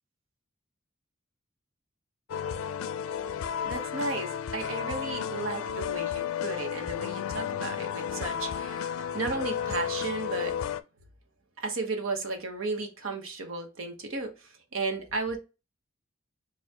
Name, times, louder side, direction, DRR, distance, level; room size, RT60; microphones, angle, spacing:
sound 1, 2.3-10.8, left 8 dB, 90° left, 0.4 m, -33 dB
voice 1, 3.6-10.6 11.6-15.4, right 3 dB, 75° right, 1.1 m, -34 dB
6.5 x 2.4 x 2.8 m
head